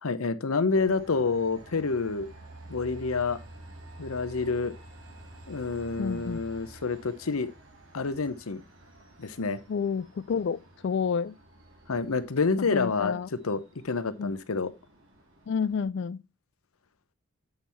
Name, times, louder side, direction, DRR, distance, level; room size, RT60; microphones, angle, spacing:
voice 1, 0.0-2.3 2.7-3.4 4.0-4.7 5.5-7.5 7.9-8.6 9.2-9.6 11.9-14.7, left 4 dB, 90° left, 0.8 m, -28 dB
Train, 0.7-15.8, right 1 dB, 75° right, 2.7 m, -50 dB
voice 2, 6.0-6.4 9.7-11.3 12.6-13.3 14.2-14.3 15.5-16.2, left 6 dB, 55° left, 0.3 m, -30 dB
8.0 x 5.5 x 4.3 m
head